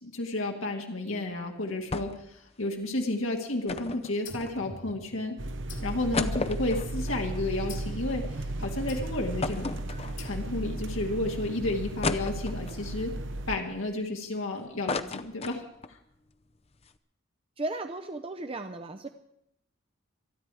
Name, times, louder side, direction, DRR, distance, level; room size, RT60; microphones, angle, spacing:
voice 1, 0.0-5.4 5.8-9.8 10.2-13.2 13.5-16.0, left 2 dB, 80° left, 2 dB, 1.9 m, -32 dB
sound 1, 1.9-2.3 2.6-2.7 3.7-4.9 5.5-5.6 5.9-8.3 8.7-8.8 9.4-10.5 11.1-11.2 12.0-12.9 13.4-14.4 14.6-16.0 16.3-16.4 16.7-16.9, left 4 dB, 30° left, 0.6 m, -35 dB
sound 2, 4.2-5.3 5.7-7.0 7.7-8.1 8.9-9.4 10.2-10.8, left 2 dB, 65° left, 2.3 m, -45 dB
sound 3, 5.4-13.6, right 1 dB, 60° right, 0.9 m, -35 dB
voice 2, 17.6-19.1, right 2 dB, 25° right, 7 dB, 0.6 m, -35 dB
26.5 x 9.8 x 4.8 m, 0.79 s
head